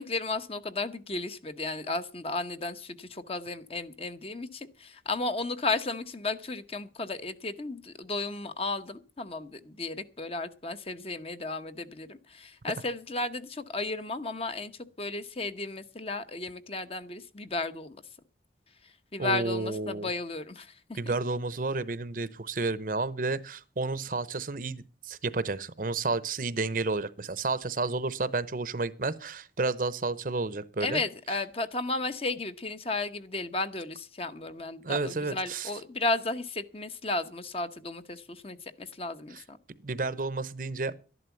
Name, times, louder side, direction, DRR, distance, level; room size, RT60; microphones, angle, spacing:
voice 1, 0.0-18.0 18.8-21.0 30.8-39.6, left 3 dB, 35° left, 1.0 m, -34 dB
voice 2, 19.2-20.1 20.9-31.0 34.8-35.7 39.3-39.4 39.8-41.0, right 3 dB, 50° right, 0.8 m, -31 dB
12.5 x 11.0 x 7.0 m
head